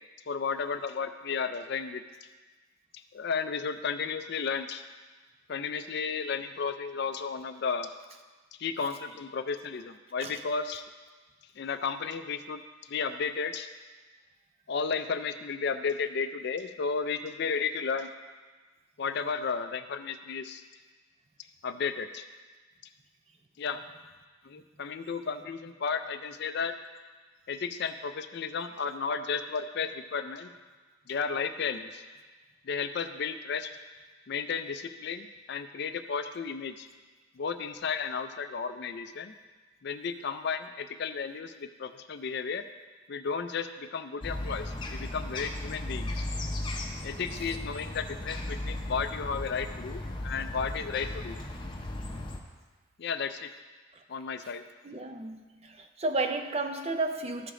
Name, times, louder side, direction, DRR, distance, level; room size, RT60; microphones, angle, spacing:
voice 1, 0.3-2.3 2.9-4.8 5.5-7.9 8.6-10.8 11.6-12.6 12.9-13.7 14.7-18.1 19.0-20.6 21.6-22.2 23.6-23.8 24.4-26.7 27.5-30.5 31.1-32.0 32.6-33.7 34.3-36.9 37.4-39.3 39.8-42.6 43.1-46.2 47.0-51.4 53.0-53.5 54.1-54.6, left 5 dB, 50° left, 10 dB, 0.4 m, -33 dB
sound 1, 44.2-52.4, left 1 dB, 20° left, 0.7 m, -36 dB
voice 2, 54.8-57.5, right 2 dB, 30° right, 6 dB, 0.5 m, -32 dB
13.5 x 5.0 x 3.7 m, 1.3 s
head